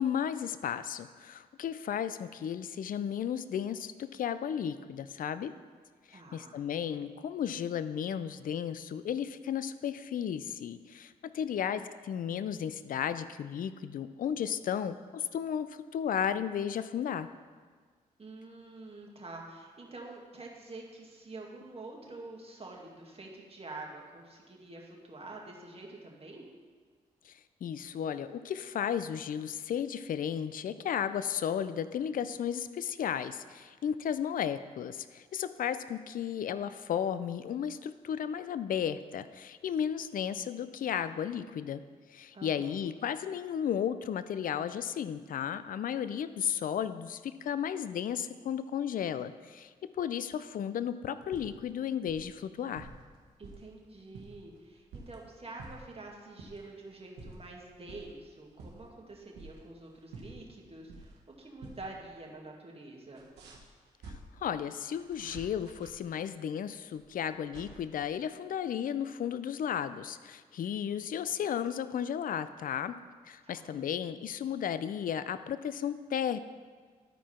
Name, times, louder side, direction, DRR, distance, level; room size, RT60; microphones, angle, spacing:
voice 1, 0.0-5.5 6.1-17.3 27.3-41.8 42.1-52.9 64.4-73.0 73.2-76.4, left 8 dB, 55° left, 13 dB, 0.4 m, -34 dB
voice 2, 6.1-6.6 18.2-26.4 42.3-42.8 53.4-63.2 73.4-73.9, right 2 dB, 35° right, -1 dB, 1.9 m, -47 dB
sound 1, 51.1-51.7 52.0-52.3 52.7-53.7 54.0-55.2 55.6-56.0 56.4-56.7 57.0-57.5 57.9-58.1 58.5-59.8 60.1-61.3 61.6-61.9 62.1-62.2 63.1-64.1 65.0-65.9 66.9-67.7, right 3 dB, 85° right, 1.0 m, -49 dB
12.5 x 4.6 x 4.4 m, 1.5 s
supercardioid pair, 45°, 17 cm